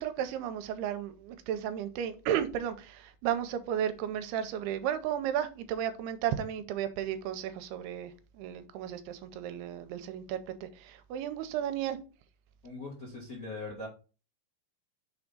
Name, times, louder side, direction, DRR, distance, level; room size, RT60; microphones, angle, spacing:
voice 1, 0.0-12.0, right 10 dB, 85° right, 2.6 m, -34 dB
voice 2, 12.6-13.9, left 2 dB, 50° left, 1.0 m, -40 dB
6.5 x 3.5 x 5.2 m
omnidirectional pair, 4.6 m